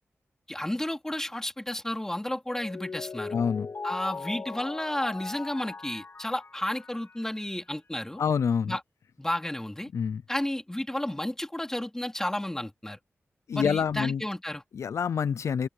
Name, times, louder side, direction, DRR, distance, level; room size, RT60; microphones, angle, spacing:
voice 1, 0.5-3.4 3.8-8.2 8.7-8.8 9.2-9.9 10.3-13.0 13.5-14.6, left 1 dB, 10° left, 3.0 m, -32 dB
Mallet percussion, 2.5-7.4, left 4 dB, 45° left, 1.3 m, -39 dB
voice 2, 3.3-3.7 8.2-8.7 9.9-10.2 13.5-14.2 14.7-15.7, left 7 dB, 90° left, 0.6 m, -27 dB
open air
wide cardioid pair, 135°, 5 cm